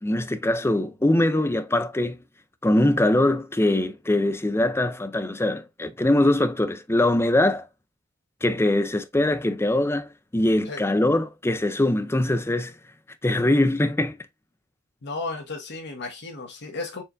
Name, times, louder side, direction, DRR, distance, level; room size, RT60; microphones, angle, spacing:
voice 1, 0.0-2.2 2.6-7.7 8.4-12.7 13.2-14.2, left 1 dB, 10° left, 0.5 m, -22 dB
voice 2, 15.0-17.0, left 3 dB, 50° left, 1.2 m, -34 dB
4.4 x 3.5 x 2.5 m
head